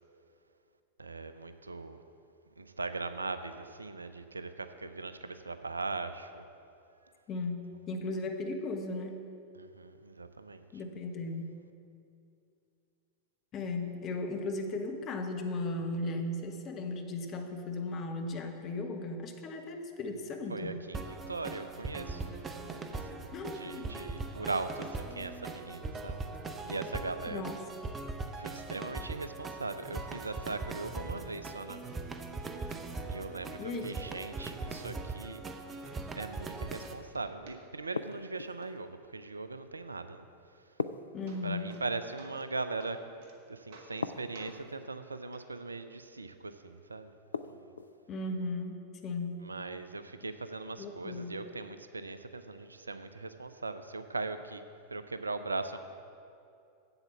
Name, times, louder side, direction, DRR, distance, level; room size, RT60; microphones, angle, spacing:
voice 1, 1.0-2.0 2.6-6.5 9.6-10.6 20.5-22.3 22.9-26.2 26.6-27.4 28.4-32.1 33.1-35.4 36.2-40.3 41.4-43.1 43.5-47.1 47.4-47.7 49.4-54.6 54.9-55.8, right 3 dB, 80° right, 10 dB, 0.5 m, -39 dB
voice 2, 7.3-9.2 10.7-11.6 13.5-20.8 23.3-23.8 27.3-27.5 33.6-33.9 41.1-41.7 48.1-49.4 50.8-51.4, left 2 dB, 30° left, 5 dB, 1.1 m, -36 dB
sound 1, 20.9-36.9, right 3 dB, 20° right, 0.7 m, -40 dB
sound 2, 30.1-30.2 30.7-30.8 31.2-31.3 31.7-32.2 32.7-33.3 33.7-33.8 34.2-35.0 35.5-35.6 35.8-36.5 36.8-37.9 38.1-38.7 40.7-40.8 41.0-41.9 42.2-42.5 42.8-43.4 43.7-44.1 44.3-44.6 45.3-45.4 46.3-46.4, right 3 dB, 55° right, 1.3 m, -55 dB
sound 3, 38.0-38.7 40.8-41.8 44.0-44.8 47.3-48.0, left 5 dB, 75° left, 0.3 m, -38 dB
7.9 x 7.9 x 7.2 m, 2.6 s
figure-of-eight pair, 90°, 0 cm